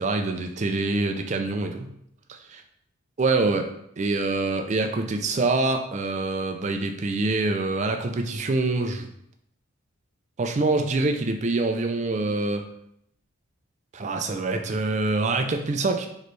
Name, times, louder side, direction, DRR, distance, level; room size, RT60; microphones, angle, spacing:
voice 1, 0.0-1.9 3.2-3.7 4.0-9.1 10.4-12.6 13.9-16.1, right 3 dB, 35° right, 6 dB, 0.4 m, -25 dB
4.2 x 3.1 x 3.2 m, 0.73 s
head